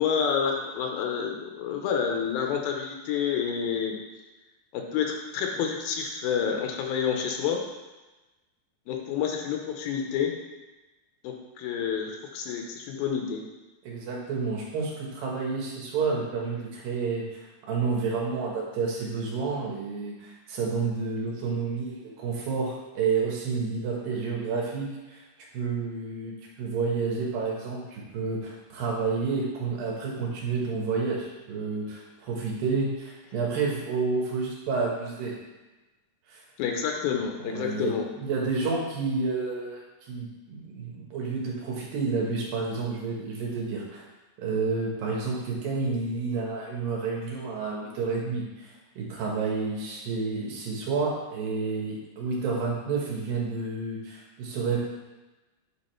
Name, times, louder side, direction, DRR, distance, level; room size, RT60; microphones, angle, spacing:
voice 1, 0.0-4.0 4.7-7.6 8.9-10.3 11.2-13.4 36.6-38.0, left 7 dB, 80° left, 2 dB, 2.6 m, -29 dB
voice 2, 13.8-17.4 17.7-25.2 25.5-35.3 36.3-36.4 37.4-39.8 40.1-44.0 44.4-54.8, right 4 dB, 75° right, -2 dB, 2.8 m, -30 dB
8.4 x 3.4 x 4.4 m, 1.1 s
omnidirectional pair, 4.3 m